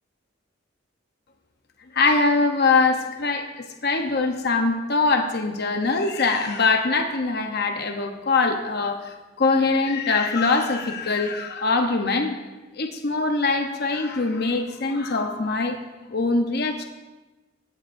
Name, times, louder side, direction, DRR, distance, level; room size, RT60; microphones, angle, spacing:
voice 1, 1.9-3.4 3.8-9.0 9.4-12.4 12.8-15.8 16.1-16.8, left 3 dB, 55° left, 5 dB, 0.9 m, -22 dB
17.5 x 14.5 x 2.6 m, 1.1 s
head